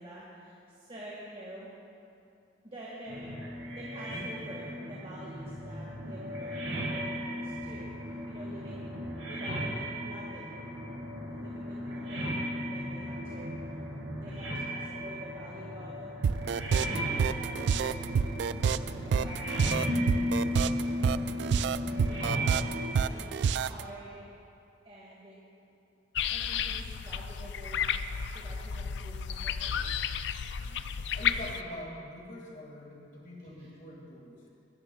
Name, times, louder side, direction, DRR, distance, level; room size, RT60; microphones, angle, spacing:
voice 1, 0.0-1.7 2.6-3.3 3.7-10.6 11.3-13.5 14.2-16.1 16.9-17.9 18.8-19.6 22.0-22.5 22.9-24.3 24.8-25.4 26.3-27.8 28.3-29.8 33.6-33.7, right 1 dB, 30° right, -5 dB, 1.6 m, -48 dB
sound 1, 3.1-22.9, equal, 85° right, 2.1 m, -35 dB
sound 2, 16.2-23.8, right 6 dB, 65° right, 0.3 m, -28 dB
sound 3, 26.2-31.6, left 7 dB, 65° left, 0.4 m, -33 dB
voice 2, 31.1-34.4, left 1 dB, 45° left, -1 dB, 2.0 m, -44 dB
19.5 x 13.5 x 2.3 m, 2.6 s
head